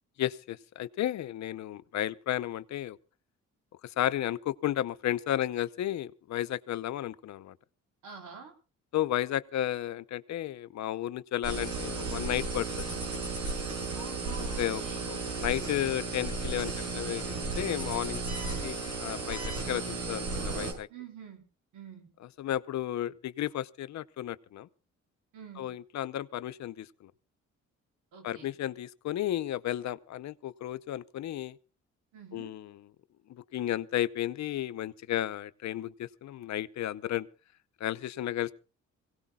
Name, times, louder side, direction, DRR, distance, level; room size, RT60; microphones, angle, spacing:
voice 1, 0.2-3.0 3.8-7.6 8.9-12.8 14.6-14.8 15.1-18.2 18.6-19.4 19.7-20.9 22.4-24.7 25.6-27.1 28.2-31.6 32.3-32.7 33.3-37.3 37.8-38.6, left 12 dB, 65° left, 14 dB, 0.8 m, -33 dB
voice 2, 8.0-8.5 13.9-15.1 20.9-21.4 21.7-22.1 25.3-25.7 28.1-28.5 32.1-32.5, right 7 dB, 85° right, 4 dB, 3.8 m, -47 dB
sound 1, 11.4-20.7, right 3 dB, 65° right, 6.4 m, -34 dB
24.5 x 17.5 x 2.3 m, 0.35 s
cardioid pair, 90°, 30 cm